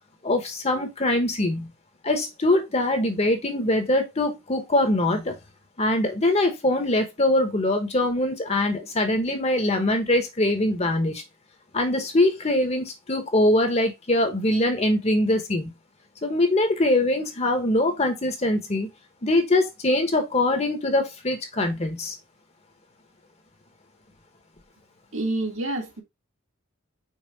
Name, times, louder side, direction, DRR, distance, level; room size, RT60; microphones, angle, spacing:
voice 1, 0.2-1.7 2.0-5.4 5.8-11.2 11.7-15.7 16.2-18.9 19.2-22.2, left 1 dB, 30° left, 1.1 m, -23 dB
voice 2, 25.1-26.0, right 2 dB, 65° right, 2.1 m, -28 dB
5.6 x 4.2 x 4.0 m
head